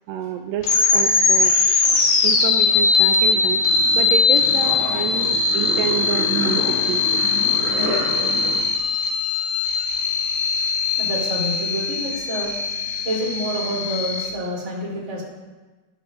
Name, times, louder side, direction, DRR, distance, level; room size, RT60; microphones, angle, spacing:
voice 1, 0.1-1.5 2.2-3.6 3.9-7.2, right 10 dB, 85° right, 5 dB, 1.9 m, -28 dB
sound 1, 0.6-14.3, left 4 dB, 55° left, 1.7 m, -20 dB
sound 2, 2.1-8.6, right 1 dB, 60° right, 3.8 m, -30 dB
voice 2, 11.0-12.5 13.0-15.2, equal, 20° right, -4 dB, 3.7 m, -28 dB
22.0 x 9.9 x 2.7 m, 1.2 s
omnidirectional pair, 4.6 m